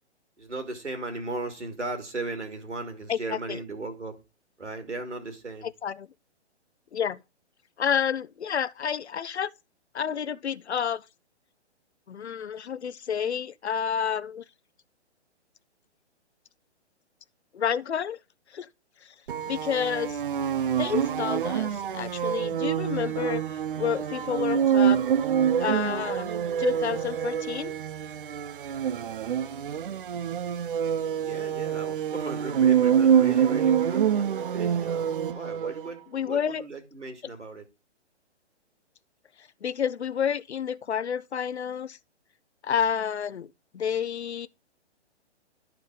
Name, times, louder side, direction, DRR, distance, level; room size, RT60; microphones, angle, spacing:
voice 1, 0.4-4.2 4.6-5.7 31.2-35.1 35.3-37.6, right 2 dB, 85° right, 2.4 m, -37 dB
voice 2, 3.1-3.6 5.6-6.1 6.9-7.2 7.8-9.5 9.9-11.0 12.1-14.4 17.5-18.2 18.5-18.7 19.0-19.1 19.5-20.2 20.8-23.4 23.8-25.0 25.6-26.3 26.6-27.7 36.1-36.6 39.4-42.0 42.6-43.5 43.7-44.5, left 8 dB, 70° left, 0.6 m, -29 dB
sound 1, 19.3-35.9, right 8 dB, 50° right, 0.4 m, -26 dB
12.0 x 4.6 x 3.7 m
figure-of-eight pair, 125°, 35 cm